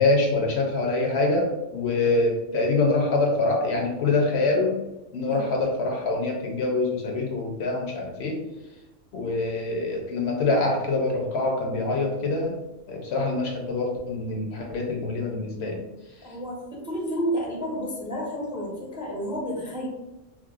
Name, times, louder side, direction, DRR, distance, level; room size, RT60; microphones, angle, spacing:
voice 1, 0.0-4.8 5.1-8.4 9.1-12.5 12.9-15.8, left 2 dB, 65° left, 1 dB, 0.8 m, -25 dB
voice 2, 16.2-16.6 16.8-19.9, equal, 5° right, -3 dB, 0.4 m, -30 dB
4.7 x 2.0 x 2.3 m, 1.1 s
omnidirectional pair, 1.3 m